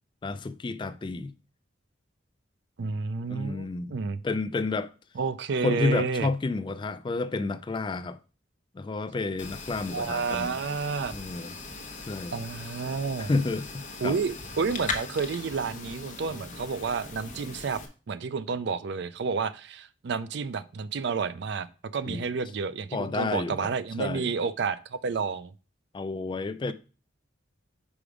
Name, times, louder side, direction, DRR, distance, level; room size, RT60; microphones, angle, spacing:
voice 1, 0.2-1.3 3.3-4.0 4.2-4.9 5.6-8.2 8.7-10.5 11.1-11.5 12.0-12.4 13.2-14.2 22.1-22.3 22.9-23.7 24.0-24.3 25.9-26.7, left 3 dB, 25° left, 0.3 m, -30 dB
voice 2, 2.8-4.2 5.2-6.3 9.9-11.1 12.3-13.3 14.0-17.8 18.1-21.7 21.9-25.5 26.7-26.8, right 5 dB, 60° right, 0.4 m, -30 dB
sound 1, 9.4-17.9, left 3 dB, 40° left, 1.0 m, -39 dB
5.0 x 4.8 x 5.0 m
head